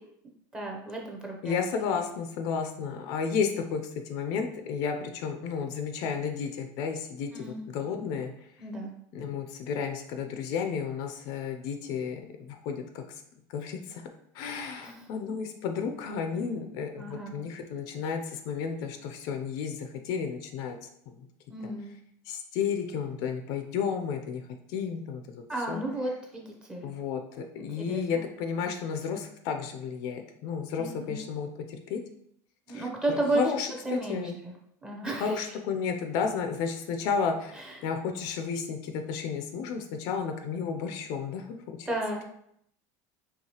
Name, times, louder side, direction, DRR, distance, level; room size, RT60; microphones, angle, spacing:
voice 1, 0.5-1.6 7.3-7.6 8.6-8.9 14.8-15.0 17.0-17.4 21.5-22.0 25.5-27.0 27.8-28.2 30.8-31.2 32.7-33.4 33.8-34.5 34.8-35.4 37.5-37.8 41.9-42.3, right 2 dB, 10° right, -1 dB, 0.6 m, -33 dB
voice 2, 1.4-8.3 9.1-13.2 13.5-14.1 14.3-20.8 21.1-21.2 21.6-21.7 22.3-24.4 24.7-25.8 26.8-32.0 32.7-34.4 35.2-41.9, left 6 dB, 45° left, 5 dB, 0.4 m, -32 dB
4.7 x 3.1 x 2.8 m, 0.72 s
cardioid pair, 175°, 9 cm